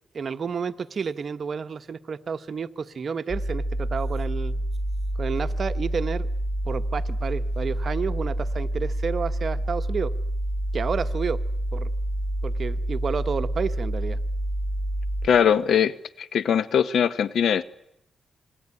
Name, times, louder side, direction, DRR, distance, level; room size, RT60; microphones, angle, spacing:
voice 1, 0.1-4.5 5.2-6.3 6.6-10.1 10.7-11.4 11.7-11.9 12.4-14.2, right 6 dB, 45° right, 10 dB, 1.2 m, -30 dB
sound 1, 3.3-15.3, right 1 dB, 10° left, 2.1 m, -28 dB
voice 2, 15.2-17.6, left 8 dB, 70° left, 15 dB, 1.2 m, -21 dB
26.5 x 21.5 x 9.8 m, 0.77 s
cardioid pair, 120°, 0 cm